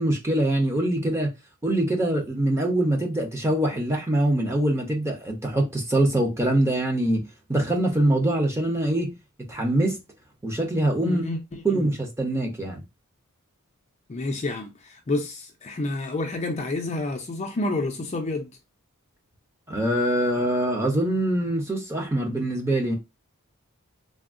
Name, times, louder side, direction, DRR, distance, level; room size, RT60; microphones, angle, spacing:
voice 1, 0.0-1.3 1.6-7.2 7.5-9.1 9.5-10.0 10.4-11.2 11.6-12.8 19.7-23.0, right 1 dB, 10° right, 0.6 m, -24 dB
voice 2, 11.0-11.9 14.1-18.5, left 2 dB, 30° left, 0.4 m, -29 dB
3.4 x 2.0 x 2.4 m
head